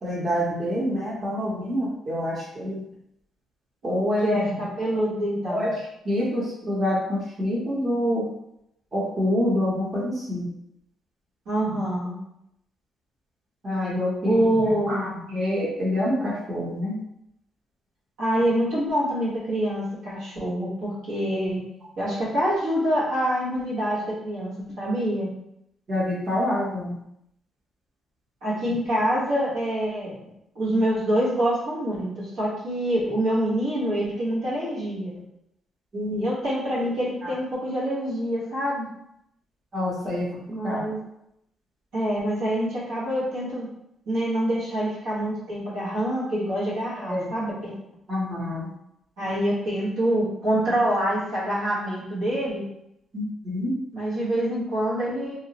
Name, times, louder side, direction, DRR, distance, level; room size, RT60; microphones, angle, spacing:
voice 1, 0.0-2.8 3.8-4.6 5.5-8.2 8.9-10.5 11.7-11.8 13.6-17.0 25.9-26.9 35.9-36.3 39.7-40.8 47.1-47.3 48.1-48.7 53.1-53.7, left 1 dB, 35° right, -5 dB, 0.9 m, -27 dB
voice 2, 4.2-5.6 11.4-12.1 14.2-14.9 18.2-21.6 22.0-25.3 28.4-30.3 30.5-35.1 36.2-38.9 40.5-41.0 41.9-43.7 44.1-47.8 49.2-52.6 53.9-55.4, right 1 dB, 90° right, -8 dB, 1.3 m, -26 dB
2.8 x 2.1 x 2.8 m, 0.79 s
cardioid pair, 90°, 0 cm